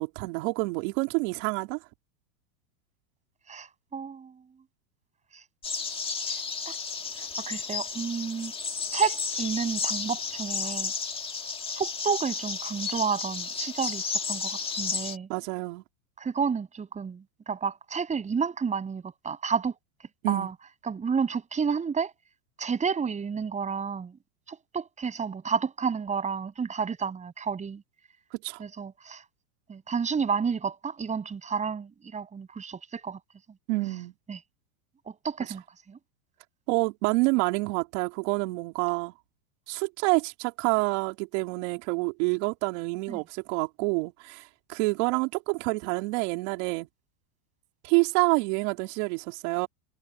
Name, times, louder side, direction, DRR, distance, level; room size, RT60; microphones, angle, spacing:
voice 1, 0.0-1.8 15.3-15.8 20.2-20.5 28.4-28.6 33.7-34.1 36.7-39.1 39.7-46.9 47.8-49.7, right 27 dB, 50° right, 4.0 m, -28 dB
voice 2, 3.5-4.4 5.3-5.4 6.3-6.8 7.2-8.5 8.9-10.9 11.7-15.3 16.2-19.7 20.3-20.5 20.8-22.1 22.6-24.2 24.5-27.8 28.6-29.2 29.7-33.2 34.3-34.4 35.1-35.6 35.9-36.0 43.1-43.2, right 6 dB, 15° right, 7.4 m, -31 dB
sound 1, 5.6-15.2, left 5 dB, 10° left, 2.0 m, -32 dB
supercardioid pair, 150°, 46 cm